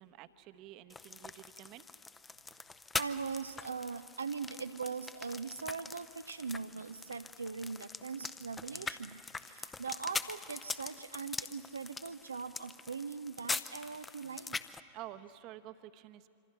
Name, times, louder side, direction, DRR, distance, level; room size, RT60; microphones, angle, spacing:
voice 1, 0.0-1.9 14.9-16.3, right 13 dB, 40° right, 12 dB, 1.0 m, -50 dB
sound 1, 0.9-14.8, left 4 dB, 15° left, 0.7 m, -43 dB
voice 2, 2.9-14.6, right 5 dB, 75° right, 10 dB, 0.5 m, -41 dB
26.5 x 25.5 x 5.8 m, 2.7 s
figure-of-eight pair, 90°, 0 cm